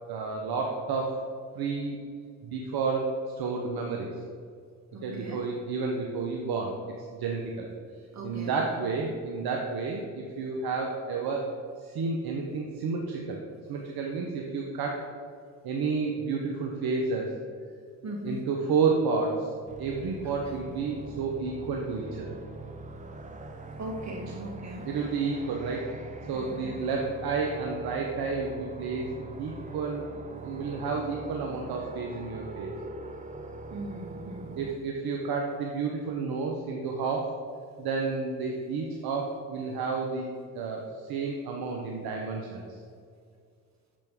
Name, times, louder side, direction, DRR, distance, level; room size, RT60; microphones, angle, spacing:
voice 1, 0.1-1.1 1.6-2.0 2.4-3.1 3.4-4.1 5.0-6.7 7.2-7.7 8.2-11.5 11.8-13.4 13.7-15.0 15.6-17.3 18.2-19.5 19.8-22.3 24.9-25.9 26.3-30.0 30.4-32.7 34.6-37.3 37.8-40.2 40.5-40.8 41.1-42.6, right 4 dB, 55° right, 1 dB, 0.9 m, -30 dB
voice 2, 4.9-5.4 8.1-8.6 8.8-8.9 18.0-18.4 20.2-20.6 23.8-24.8 26.3-26.7 33.7-34.7, right 1 dB, 40° right, 1 dB, 1.6 m, -39 dB
sound 1, 19.7-34.7, right 2 dB, 15° right, 0.6 m, -43 dB
6.8 x 5.1 x 3.6 m, 2.2 s
hypercardioid pair, 55°, 44 cm